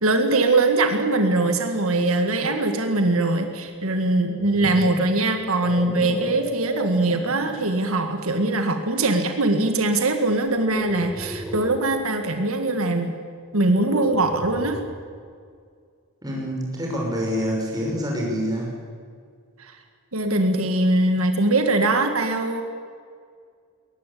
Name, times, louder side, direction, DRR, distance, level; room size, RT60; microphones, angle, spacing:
voice 1, 0.0-13.2 13.5-14.8 19.6-19.8 20.1-22.6, right 2 dB, 85° right, 6 dB, 1.9 m, -22 dB
sound 1, 4.1-7.7 8.4-8.6 10.4-11.9 13.6-15.1, equal, ahead, 2.1 m, -34 dB
voice 2, 16.2-18.7, equal, 20° right, -2 dB, 6.0 m, -26 dB
22.0 x 18.5 x 8.6 m, 2.1 s
head